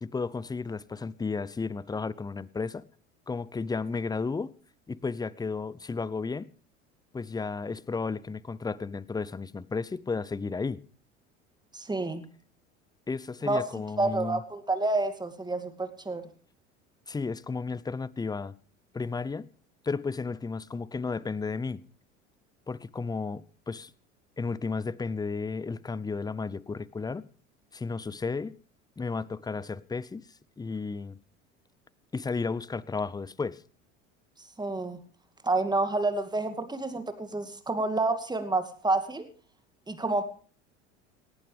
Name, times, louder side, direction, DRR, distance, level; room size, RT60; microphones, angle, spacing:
voice 1, 0.0-2.8 3.3-4.5 4.9-6.5 7.1-10.8 13.1-14.4 17.1-18.5 18.9-19.5 19.8-21.8 22.7-23.9 24.4-27.3 27.7-28.6 29.0-30.3 30.6-31.2 32.1-33.6, left 4 dB, 10° left, 0.7 m, -33 dB
voice 2, 11.7-12.2 13.5-13.6 14.0-16.2 34.6-35.0 35.4-39.2 39.9-40.2, right 2 dB, 10° right, 2.3 m, -29 dB
18.5 x 17.5 x 3.4 m
figure-of-eight pair, 70°, 36 cm